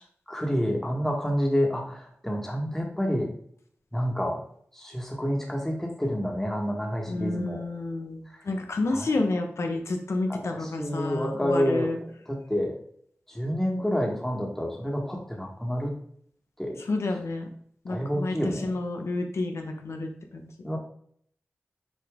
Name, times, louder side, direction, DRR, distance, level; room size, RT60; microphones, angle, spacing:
voice 1, 0.3-3.3 3.9-4.4 4.8-7.6 8.9-9.1 10.3-12.7 13.3-15.9 16.6-16.8 17.9-18.7 20.6-20.8, equal, 10° left, 0 dB, 1.7 m, -28 dB
voice 2, 7.1-12.0 16.9-17.5 17.8-20.1, left 2 dB, 80° left, 4 dB, 1.1 m, -30 dB
6.6 x 5.1 x 3.7 m, 0.63 s
wide cardioid pair, 55°, 5 cm